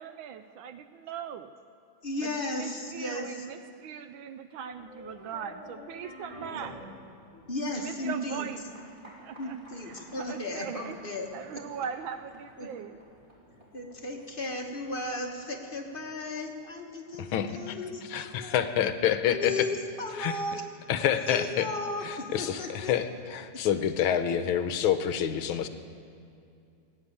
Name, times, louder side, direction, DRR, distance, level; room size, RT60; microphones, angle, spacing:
voice 1, 0.0-1.5 2.2-6.8 7.7-8.9 9.2-9.6 9.8-11.0 11.3-13.0, right 7 dB, 75° right, 10 dB, 1.3 m, -40 dB
voice 2, 2.0-3.5 6.4-6.6 7.5-8.5 9.4-11.6 12.6-12.7 13.7-18.7 19.3-20.6 21.3-22.9, left 2 dB, 30° left, 1 dB, 1.1 m, -35 dB
sound 1, 4.6-17.4, left 1 dB, 20° right, 3.1 m, -51 dB
voice 3, 17.2-17.8 18.1-19.7 20.2-20.3 20.9-21.7 22.0-25.7, left 9 dB, 75° left, 10 dB, 1.5 m, -27 dB
17.0 x 9.7 x 8.4 m, 2.5 s
omnidirectional pair, 2.4 m